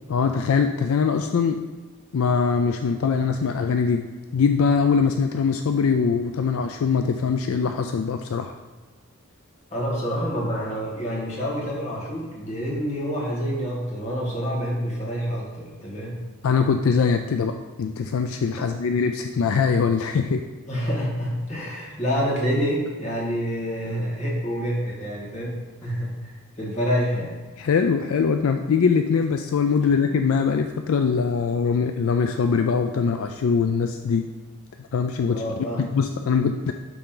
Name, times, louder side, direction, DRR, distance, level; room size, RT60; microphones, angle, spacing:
voice 1, 0.1-1.6 2.1-4.1 4.3-8.5 16.4-17.5 17.8-20.4 27.6-34.3 34.9-36.7, left 5 dB, 65° left, 6 dB, 0.4 m, -22 dB
voice 2, 9.7-16.2 18.6-18.7 20.7-27.4 35.2-35.9, equal, 30° left, -5 dB, 2.0 m, -27 dB
11.5 x 3.8 x 3.8 m, 1.3 s
head